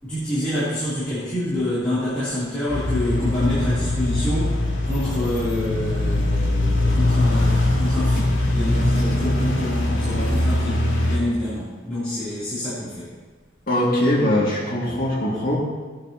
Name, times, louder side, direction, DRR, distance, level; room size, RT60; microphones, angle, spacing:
voice 1, 0.0-13.1, left 1 dB, 5° left, -15 dB, 3.6 m, -27 dB
sound 1, 2.7-11.2, left 1 dB, 70° left, 3.3 m, -21 dB
voice 2, 13.7-15.6, left 1 dB, 45° left, -5 dB, 2.5 m, -21 dB
17.5 x 8.9 x 3.1 m, 1.4 s
head